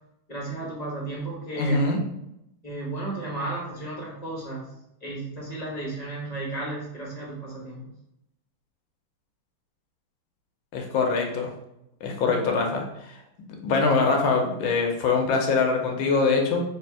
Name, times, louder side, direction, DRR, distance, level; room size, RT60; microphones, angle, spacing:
voice 1, 0.3-1.8 2.6-4.7 5.0-7.9 12.4-12.5, right 2 dB, 25° left, -5 dB, 0.9 m, -34 dB
voice 2, 1.6-2.0 10.7-11.5 12.0-12.8 13.6-16.6, left 4 dB, 75° left, 2 dB, 1.4 m, -23 dB
3.4 x 3.2 x 4.6 m, 0.82 s
omnidirectional pair, 2.3 m